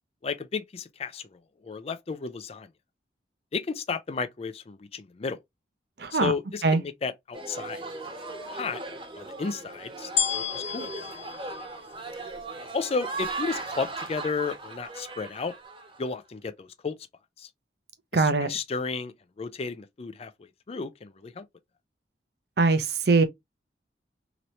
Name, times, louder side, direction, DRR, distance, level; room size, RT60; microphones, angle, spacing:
voice 1, 0.2-1.2 1.6-2.7 3.5-5.4 6.1-7.8 8.5-8.8 9.2-10.9 12.7-15.5 16.0-17.0 17.4-17.5 18.1-20.3 20.7-21.4, left 4 dB, 35° left, 0.4 m, -33 dB
voice 2, 6.0-6.3 6.6-6.8 18.1-18.5 22.6-23.2, right 3 dB, 60° right, 0.6 m, -21 dB
sound 1, 7.3-16.1, right 3 dB, 30° right, 0.9 m, -38 dB
sound 2, 10.2-12.6 13.2-13.3, left 8 dB, 75° left, 0.7 m, -31 dB
2.9 x 2.7 x 3.0 m
head